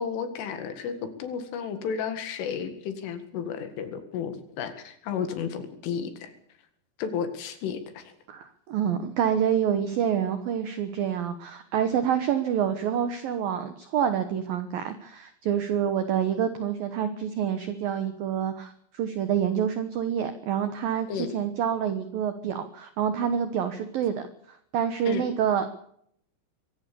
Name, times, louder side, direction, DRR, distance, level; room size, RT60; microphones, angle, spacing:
voice 1, 0.0-6.3 7.0-8.1 21.1-21.3 25.1-25.2, left 7 dB, 75° left, 9 dB, 4.3 m, -33 dB
voice 2, 8.3-25.7, right 8 dB, 75° right, 10 dB, 2.1 m, -27 dB
23.0 x 16.5 x 7.0 m, 0.69 s
omnidirectional pair, 5.9 m